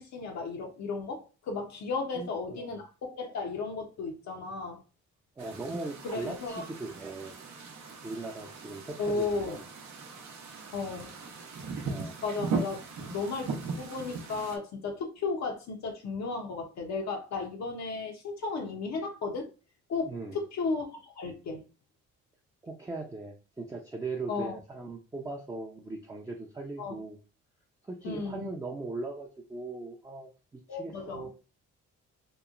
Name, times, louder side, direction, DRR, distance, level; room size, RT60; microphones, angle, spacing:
voice 1, 0.0-4.8 6.0-6.7 9.0-9.6 10.7-11.1 12.2-12.8 13.1-19.5 19.9-21.6 24.3-24.6 26.8-27.0 28.0-28.5 30.7-31.3, left 4 dB, 65° left, 0.7 m, -34 dB
voice 2, 2.1-2.8 5.4-7.3 8.0-9.7 11.9-12.2 20.0-20.4 22.6-27.2 27.8-31.3, right 3 dB, 10° right, 0.5 m, -39 dB
sound 1, 5.4-14.6, right 4 dB, 70° right, 0.7 m, -39 dB
3.0 x 2.1 x 2.4 m
cardioid pair, 90°, 30 cm